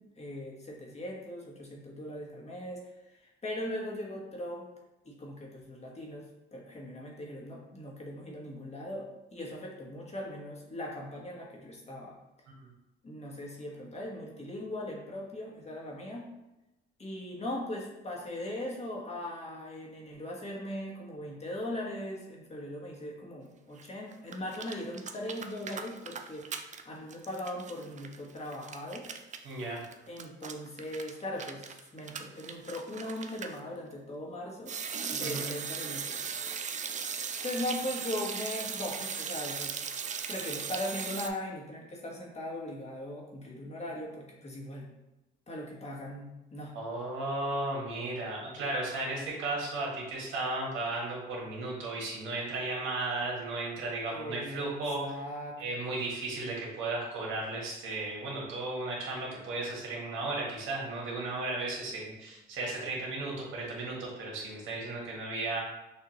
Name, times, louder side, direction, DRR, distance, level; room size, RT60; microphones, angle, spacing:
voice 1, 0.0-4.7 5.0-12.1 13.0-16.3 17.0-29.0 30.1-34.7 35.1-36.2 37.4-39.7 40.3-44.9 45.5-46.7 54.1-54.7 55.0-56.0, left 1 dB, 35° left, -2 dB, 1.3 m, -39 dB
sound 1, 23.8-23.9 24.1-26.8 27.1-33.6 34.7-41.3, right 6 dB, 40° right, 0.4 m, -38 dB
voice 2, 29.4-29.8 35.2-35.5 46.7-55.0 55.6-65.6, right 2 dB, 80° right, -3 dB, 1.6 m, -35 dB
6.3 x 2.8 x 3.0 m, 0.98 s
cardioid pair, 90°, 20 cm